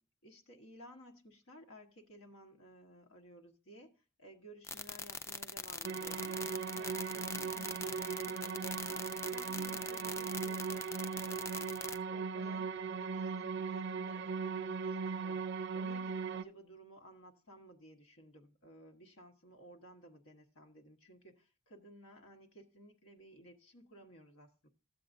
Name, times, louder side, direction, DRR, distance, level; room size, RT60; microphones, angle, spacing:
voice 1, 0.2-6.4 6.7-11.0 11.2-11.8 12.1-24.7, right 1 dB, 85° left, 1.2 m, -56 dB
sound 1, 4.6-12.0, left 4 dB, 15° left, 0.3 m, -42 dB
sound 2, 5.8-16.4, right 5 dB, 60° right, 0.4 m, -38 dB
13.5 x 7.6 x 2.6 m
head